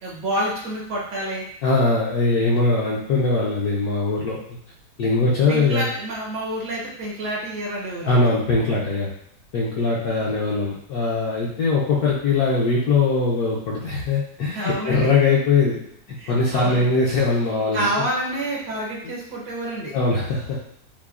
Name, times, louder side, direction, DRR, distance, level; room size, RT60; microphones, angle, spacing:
voice 1, 0.0-1.5 5.5-8.3 14.5-15.1 16.2-16.9 17.7-19.9, right 1 dB, 70° right, -4 dB, 1.5 m, -28 dB
voice 2, 1.6-4.4 5.0-5.9 8.0-9.1 9.5-15.8 16.1-18.0 19.9-20.6, left 3 dB, 65° left, -5 dB, 1.0 m, -21 dB
5.9 x 2.1 x 2.4 m, 0.71 s
omnidirectional pair, 2.0 m